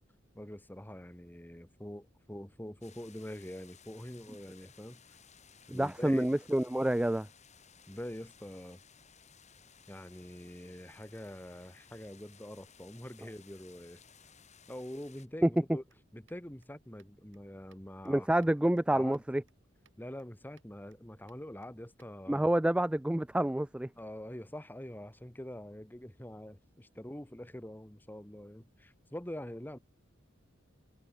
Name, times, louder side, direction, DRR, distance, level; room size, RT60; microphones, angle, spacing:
voice 1, 0.3-5.0 5.7-6.3 7.9-8.8 9.9-14.0 14.7-15.8 16.1-18.3 18.6-19.2 20.0-22.5 23.9-29.8, left 1 dB, 10° left, 1.4 m, -45 dB
sound 1, 2.8-15.3, left 7 dB, 35° left, 7.7 m, -60 dB
voice 2, 5.7-7.3 15.4-15.5 18.1-19.4 22.3-23.9, right 1 dB, 5° right, 0.3 m, -28 dB
sound 2, 15.1-22.2, right 6 dB, 70° right, 7.7 m, -73 dB
head